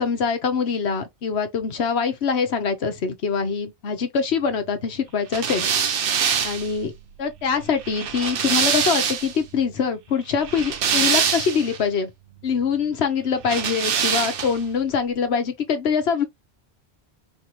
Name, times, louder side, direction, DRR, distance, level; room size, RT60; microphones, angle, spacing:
voice 1, 0.0-5.7 6.4-6.9 7.2-12.1 12.4-16.2, left 6 dB, 75° left, 1.2 m, -24 dB
sound 1, 5.3-9.4 10.3-11.8 13.4-14.7, right 7 dB, 60° right, 0.8 m, -24 dB
4.9 x 2.5 x 2.9 m
omnidirectional pair, 1.1 m